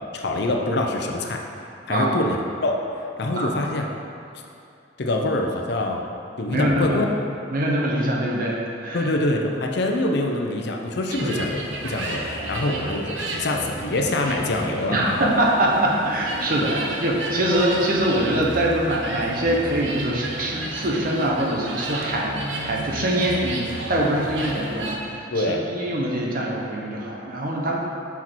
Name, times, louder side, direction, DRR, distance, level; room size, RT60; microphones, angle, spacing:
voice 1, 0.1-1.4 1.9-2.8 3.2-3.9 5.0-6.1 6.4-7.1 8.9-13.1 13.3-15.3 25.3-25.6, left 1 dB, 65° left, 2 dB, 0.7 m, -25 dB
voice 2, 6.5-7.0 7.5-9.1 11.2-11.3 14.9-27.8, right 1 dB, 50° right, -2 dB, 1.0 m, -23 dB
sound 1, 11.1-25.0, right 1 dB, 80° right, 0.9 m, -32 dB
6.3 x 5.7 x 4.5 m, 2.6 s
head